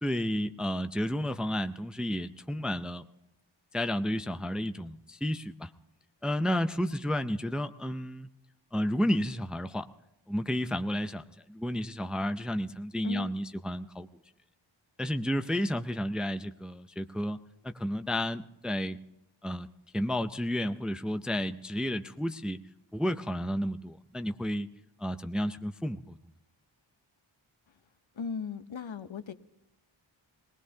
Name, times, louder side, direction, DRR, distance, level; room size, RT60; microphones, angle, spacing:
voice 1, 0.0-3.1 3.7-5.7 6.2-8.3 8.7-9.9 10.3-14.1 15.0-17.4 17.6-19.0 19.4-19.7 19.9-22.6 22.9-24.7 25.0-26.1, equal, ahead, 9 dB, 0.5 m, -31 dB
voice 2, 28.1-29.3, left 5 dB, 70° left, 10 dB, 0.9 m, -37 dB
20.0 x 19.5 x 2.8 m, 0.89 s
wide cardioid pair, 75°, 48 cm